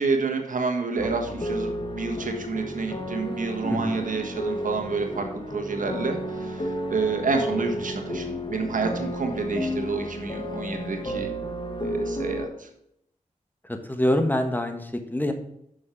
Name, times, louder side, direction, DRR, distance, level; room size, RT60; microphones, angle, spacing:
voice 1, 0.0-11.3 11.8-12.7, right 4 dB, 70° right, 3 dB, 1.5 m, -29 dB
sound 1, 1.0-12.5, equal, 35° left, 1.5 m, -32 dB
voice 2, 13.7-15.3, left 1 dB, 15° left, 6 dB, 1.4 m, -25 dB
6.5 x 6.4 x 5.9 m, 0.75 s
cardioid pair, 45°, 14 cm